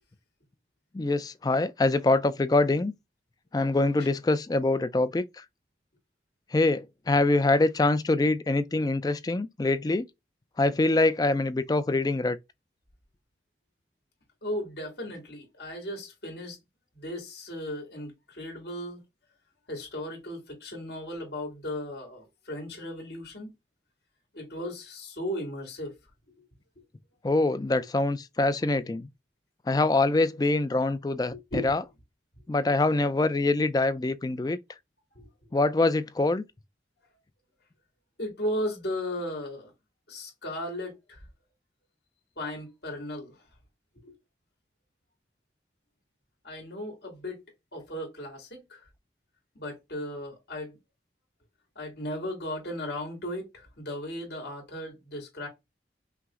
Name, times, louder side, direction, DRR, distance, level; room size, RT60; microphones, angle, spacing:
voice 1, 0.9-2.9 3.5-5.4 6.5-10.1 10.6-12.4 27.2-29.1 29.7-31.3 31.6-31.8 32.5-34.6 35.5-36.4, left 2 dB, 20° left, 0.3 m, -24 dB
voice 2, 14.4-16.6 16.9-19.0 19.7-23.5 24.3-25.9 31.3-31.7 35.1-35.2 38.2-39.7 40.1-41.2 42.4-43.4 44.0-44.1 46.4-47.4 47.7-48.8 49.5-50.8 51.8-55.5, left 1 dB, 70° left, 2.2 m, -36 dB
5.7 x 2.0 x 3.6 m
head